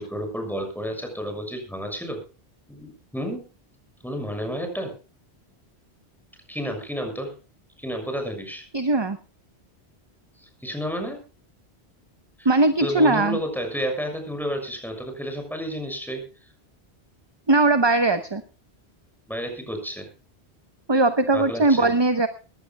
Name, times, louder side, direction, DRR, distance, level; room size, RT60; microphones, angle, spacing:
voice 1, 0.0-2.2 2.7-3.5 4.0-4.9 6.5-7.3 7.8-8.6 10.4-11.2 12.4-12.5 12.8-16.3 19.3-20.1 21.3-21.9, equal, ahead, 4 dB, 6.5 m, -31 dB
voice 2, 8.7-9.2 12.4-13.4 17.5-18.4 20.9-22.3, right 2 dB, 25° right, 10 dB, 0.9 m, -19 dB
21.0 x 16.5 x 2.2 m, 0.33 s
omnidirectional pair, 1.1 m